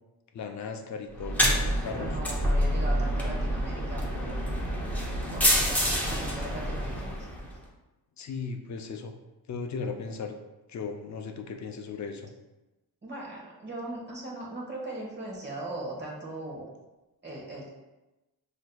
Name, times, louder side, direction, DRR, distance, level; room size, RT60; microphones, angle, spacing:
voice 1, 0.3-2.2 8.2-9.1 9.5-10.3 10.7-12.3, left 5 dB, 50° left, 5 dB, 0.4 m, -37 dB
sound 1, 1.1-7.5, equal, 5° left, 0.6 m, -27 dB
voice 2, 1.9-4.3 5.3-7.1 13.0-16.7 17.2-17.7, right 2 dB, 25° right, -3 dB, 1.1 m, -39 dB
6.1 x 2.7 x 2.2 m, 1.0 s
wide cardioid pair, 130°, 38 cm